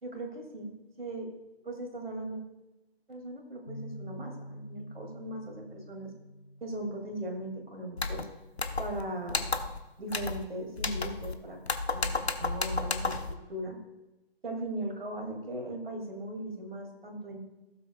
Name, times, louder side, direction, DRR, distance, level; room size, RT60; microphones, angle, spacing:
voice 1, 0.0-0.7 1.0-1.3 1.6-2.4 3.1-6.1 6.6-8.2 8.8-9.5 10.0-11.6 11.9-13.8 14.4-17.4, right 1 dB, 65° right, 2 dB, 2.7 m, -38 dB
sound 1, 3.7-9.9, equal, 25° left, 0.5 m, -49 dB
sound 2, 8.0-8.2 8.6-9.0 9.3-9.8 10.1-10.4 10.8-11.3 11.7-13.3, left 3 dB, 85° left, 1.0 m, -32 dB
16.0 x 7.6 x 2.4 m, 0.99 s
figure-of-eight pair, 155°, 31 cm